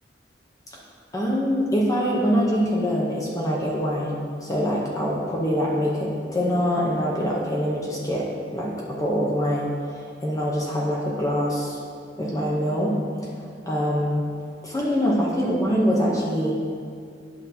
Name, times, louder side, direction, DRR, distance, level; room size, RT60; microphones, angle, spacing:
voice 1, 1.1-8.2 8.5-11.8 12.2-12.9 13.2-13.3 13.7-14.3 14.6-16.6, equal, 20° left, -4 dB, 0.7 m, -24 dB
9.7 x 5.8 x 2.7 m, 2.3 s
head